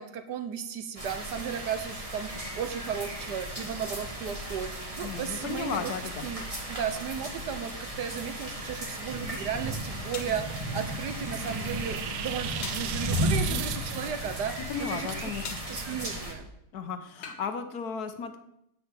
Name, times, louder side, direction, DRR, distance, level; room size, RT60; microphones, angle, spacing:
voice 1, 0.0-5.9 6.2-15.3 15.7-16.5, right 8 dB, 65° right, 10 dB, 1.3 m, -35 dB
sound 1, 1.0-16.3, equal, 20° right, 1.7 m, -35 dB
voice 2, 5.0-6.3 13.5-13.6 14.7-15.6 16.7-18.4, left 6 dB, 55° left, 9 dB, 1.3 m, -35 dB
sound 2, 10.1-10.4 12.6-12.9 15.4-15.7 17.2-17.5, left 6 dB, 85° left, 2.0 m, -40 dB
sound 3, 10.3-14.5, right 12 dB, 80° right, 1.4 m, -38 dB
9.8 x 6.0 x 8.2 m, 0.80 s
omnidirectional pair, 2.2 m